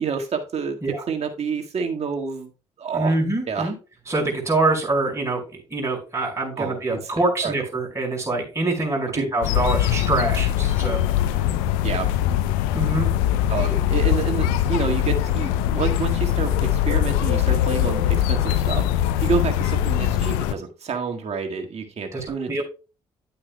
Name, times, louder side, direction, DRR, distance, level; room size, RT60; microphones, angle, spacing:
voice 1, 0.0-0.8 1.1-2.5 2.8-3.2 3.5-3.7 6.6-7.0 7.4-7.5 9.1-9.3 11.8-12.1 13.5-18.8 19.2-22.6, right 5 dB, 50° right, 4 dB, 1.8 m, -28 dB
voice 2, 2.9-3.7 4.1-5.4 5.7-11.0 12.7-13.1 22.1-22.6, right 2 dB, 20° right, -1 dB, 5.1 m, -24 dB
sound 1, 9.4-20.5, left 11 dB, 80° left, 0.6 m, -22 dB
10.5 x 8.6 x 2.2 m, 0.32 s
hypercardioid pair, 50°, 14 cm